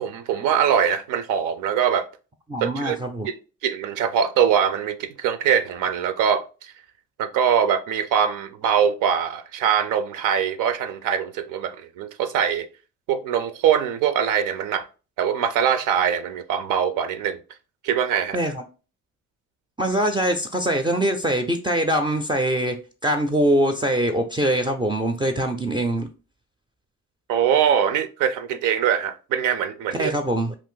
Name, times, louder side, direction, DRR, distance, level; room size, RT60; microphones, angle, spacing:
voice 1, 0.0-2.1 2.6-3.0 3.3-3.4 3.6-6.7 7.2-12.7 13.1-14.9 15.2-17.4 17.8-18.4 27.3-30.1, right 8 dB, 85° right, 0.5 m, -22 dB
voice 2, 2.5-3.3 18.3-18.6 19.8-26.1 29.9-30.6, right 1 dB, 15° right, 0.4 m, -23 dB
2.5 x 2.5 x 3.7 m
cardioid pair, 90°, 30 cm